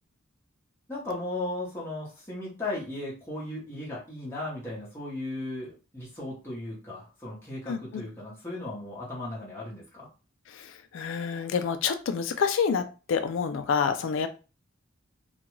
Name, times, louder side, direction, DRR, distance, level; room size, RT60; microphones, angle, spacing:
voice 1, 0.9-10.1, left 2 dB, 10° left, -7 dB, 0.8 m, -36 dB
voice 2, 7.7-8.0 10.5-14.3, left 6 dB, 60° left, 9 dB, 0.3 m, -28 dB
2.5 x 2.2 x 3.0 m, 0.33 s
head